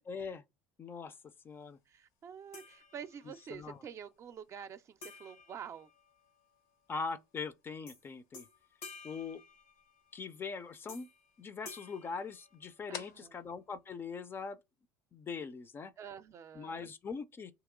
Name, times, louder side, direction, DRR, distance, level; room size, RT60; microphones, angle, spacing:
voice 1, 0.1-0.4 0.8-1.1 1.4-1.8 3.5-3.8 6.9-8.5 9.0-9.4 10.1-11.1 11.4-14.6 15.1-15.9 16.5-17.5, left 5 dB, 30° left, 0.5 m, -41 dB
sound 1, 1.2-14.9, left 8 dB, 65° left, 0.7 m, -58 dB
voice 2, 1.9-5.9 12.9-13.4 16.0-16.9, right 8 dB, 45° right, 0.5 m, -48 dB
sound 2, 2.5-3.5 5.0-6.6 7.9-8.0 8.3-10.2 10.9-11.3 11.6-13.1, left 4 dB, 90° left, 1.1 m, -53 dB
2.9 x 2.9 x 3.7 m
hypercardioid pair, 80°, 7 cm